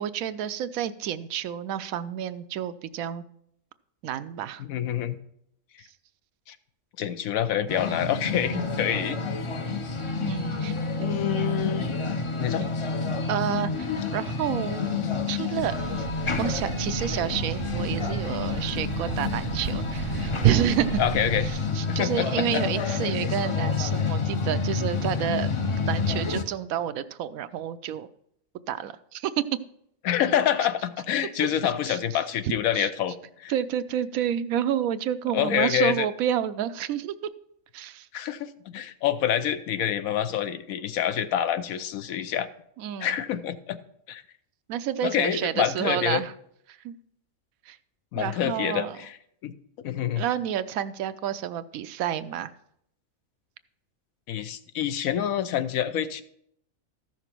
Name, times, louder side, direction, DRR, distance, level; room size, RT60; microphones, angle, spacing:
voice 1, 0.0-3.2 4.0-4.6 10.2-10.8 13.3-13.9 14.1-14.8 15.3-15.7 16.4-21.0 21.4-25.5 25.9-28.1 28.7-29.4 31.8-32.9 33.5-37.1 37.7-38.1 42.8-43.2 44.7-46.3 46.7-47.0 47.7-47.8 48.1-49.0 50.2-52.5, right 10 dB, 90° right, 12 dB, 1.0 m, -30 dB
voice 2, 4.6-5.2 6.5-6.6 7.0-9.2 11.0-11.9 12.4-12.7 21.0-21.5 21.9-22.6 30.0-33.5 35.3-36.1 38.1-42.5 43.0-43.8 44.1-44.2 45.0-46.2 48.1-49.1 49.4-49.5 49.8-50.2 54.3-56.2, left 10 dB, 90° left, 11 dB, 1.1 m, -27 dB
sound 1, 7.7-26.4, left 4 dB, 40° left, 0.4 m, -29 dB
Thump thud, 15.6-21.8, right 10 dB, 65° right, 0.6 m, -30 dB
14.0 x 6.1 x 4.4 m, 0.72 s
omnidirectional pair, 1.4 m